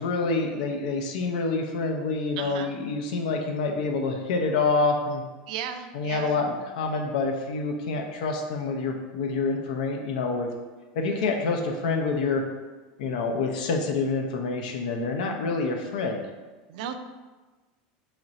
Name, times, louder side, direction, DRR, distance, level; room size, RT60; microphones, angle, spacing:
voice 1, 0.0-5.2 5.9-10.5 11.0-12.4 13.0-16.3, left 3 dB, 80° left, 3 dB, 0.5 m, -27 dB
voice 2, 2.4-2.7 5.5-6.4 11.1-11.3 16.7-17.0, right 8 dB, 75° right, 8 dB, 0.3 m, -35 dB
3.1 x 2.5 x 4.0 m, 1.3 s
supercardioid pair, 140°, 4 cm